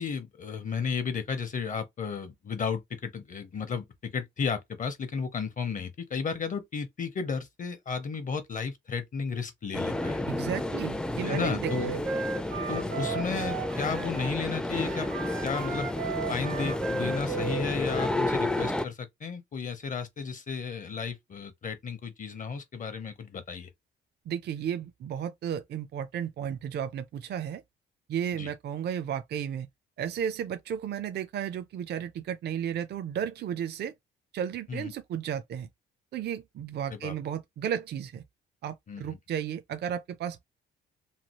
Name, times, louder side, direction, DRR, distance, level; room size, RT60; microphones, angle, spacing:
voice 1, 0.0-10.2 11.2-12.0 12.7-15.1 15.4-15.9 16.3-23.7 28.4-28.5 34.7-34.9 36.9-37.1 38.9-39.0, left 5 dB, 40° left, 0.7 m, -33 dB
sound 1, 9.7-18.9, left 1 dB, 5° left, 0.4 m, -31 dB
voice 2, 10.3-12.0 24.3-27.6 28.1-29.7 30.0-33.9 34.3-35.7 36.1-38.2 38.6-40.4, right 9 dB, 55° right, 0.5 m, -33 dB
Wind instrument woodwind instrument, 11.2-14.4 14.7-18.1, right 5 dB, 80° right, 1.0 m, -36 dB
3.2 x 2.3 x 2.9 m
cardioid pair, 90°, 20 cm